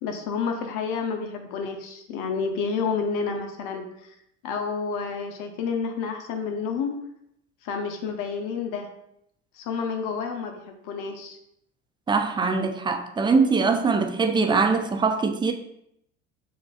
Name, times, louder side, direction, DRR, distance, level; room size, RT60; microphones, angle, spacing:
voice 1, 0.0-4.1 4.4-6.9 7.6-8.9 9.5-11.4, left 5 dB, 60° left, 0.8 m, -30 dB
voice 2, 12.1-15.5, right 4 dB, 15° right, 0.4 m, -22 dB
6.8 x 2.6 x 2.4 m
hypercardioid pair, 80°, 36 cm